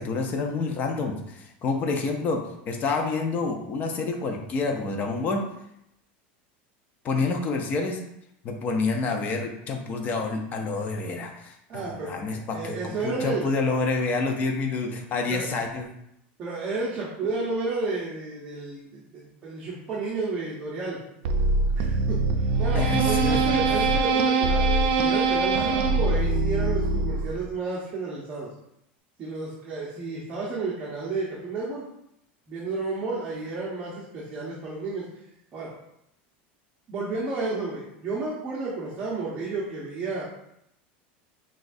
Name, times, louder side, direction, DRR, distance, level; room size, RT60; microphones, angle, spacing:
voice 1, 0.0-5.4 7.0-8.0 8.4-15.9 22.7-23.6, left 3 dB, 30° left, 2 dB, 0.6 m, -28 dB
voice 2, 11.7-13.4 15.3-15.4 16.4-21.0 21.7-22.2 22.6-28.5 29.2-31.8 32.5-35.1 35.5-35.7 36.9-40.2, right 3 dB, 25° right, -7 dB, 0.9 m, -31 dB
sound 1, 21.3-27.5, right 3 dB, 70° right, 0.5 m, -23 dB
6.0 x 2.4 x 2.6 m, 0.78 s
supercardioid pair, 150°, 6 cm